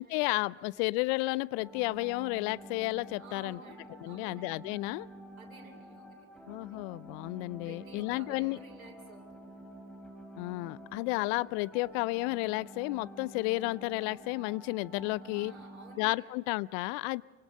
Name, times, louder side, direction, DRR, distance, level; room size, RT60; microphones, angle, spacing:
voice 1, 0.0-3.6 4.0-5.1 6.5-8.6 10.4-15.5 16.0-17.2, left 23 dB, 55° left, 22 dB, 0.6 m, -32 dB
voice 2, 0.5-0.9 3.2-4.6 5.4-6.8 7.6-9.8 15.2-16.4, right 4 dB, 90° right, 1 dB, 2.8 m, -53 dB
sound 1, 1.5-16.0, right 1 dB, ahead, 4.5 m, -49 dB
25.5 x 24.5 x 5.5 m, 1.3 s
hypercardioid pair, 75°, 41 cm